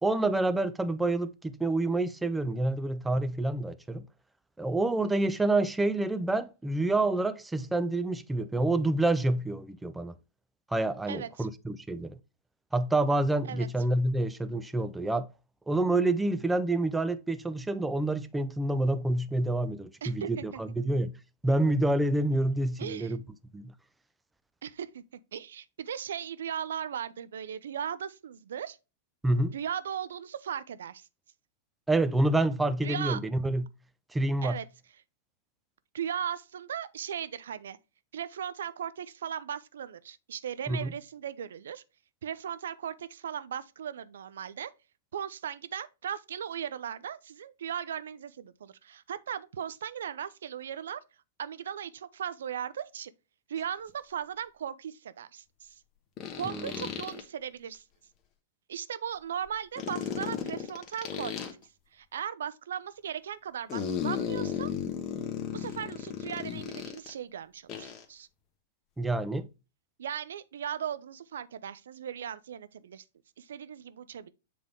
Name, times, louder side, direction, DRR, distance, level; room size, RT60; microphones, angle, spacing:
voice 1, 0.0-4.0 4.6-10.1 10.7-12.2 12.7-15.3 15.7-21.2 21.4-23.2 23.5-23.7 29.2-29.5 31.9-33.7 34.1-34.6 40.7-40.9 56.4-56.7 69.0-69.5, right 2 dB, 5° right, 0.5 m, -28 dB
voice 2, 11.1-11.5 13.4-13.7 20.0-20.6 22.8-23.2 24.6-25.0 25.3-28.8 29.5-31.1 32.8-33.2 34.4-34.6 35.9-37.8 38.1-41.8 42.2-44.7 45.1-51.0 51.4-53.1 53.5-55.8 56.3-57.8 58.7-61.5 61.9-64.7 65.5-68.3 70.0-73.0 73.4-74.3, right 9 dB, 70° right, 0.5 m, -37 dB
sound 1, 53.6-53.7 56.2-57.2 59.8-61.5 63.7-67.1 67.7-68.0, left 8 dB, 30° left, 1.1 m, -35 dB
7.6 x 3.5 x 3.5 m
hypercardioid pair, 115°, 0 cm